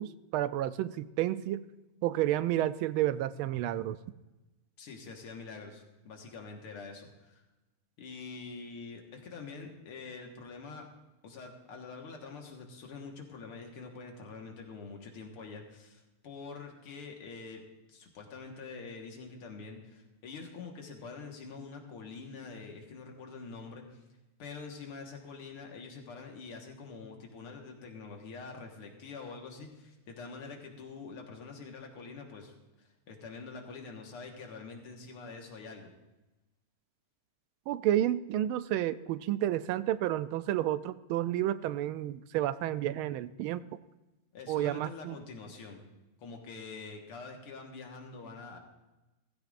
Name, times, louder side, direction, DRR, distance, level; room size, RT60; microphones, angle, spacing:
voice 1, 0.0-1.6 2.0-4.0 37.7-43.6 44.5-45.2, right 13 dB, 80° right, 14 dB, 1.4 m, -31 dB
voice 2, 4.8-7.4 8.0-10.9 11.2-17.6 17.9-24.0 24.4-32.5 32.8-35.9 44.3-45.8 46.2-48.6, left 4 dB, 90° left, 2 dB, 2.5 m, -45 dB
17.0 x 15.0 x 2.5 m, 1.1 s
omnidirectional pair, 2.4 m